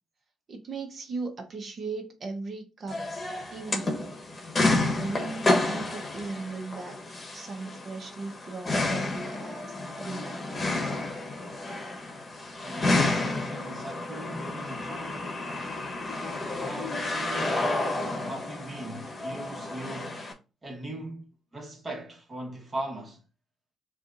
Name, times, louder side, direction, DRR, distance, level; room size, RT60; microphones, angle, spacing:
voice 1, 0.5-3.1 3.5-4.3 5.0-7.0 7.3-10.7, right 3 dB, 50° right, 1.0 m, -38 dB
sound 1, 2.9-20.3, left 2 dB, 30° left, 1.2 m, -30 dB
voice 2, 12.6-15.4 16.6-20.2 20.6-23.2, right 1 dB, 30° right, 1.5 m, -39 dB
6.8 x 2.6 x 2.6 m
cardioid pair, 90°, 0 cm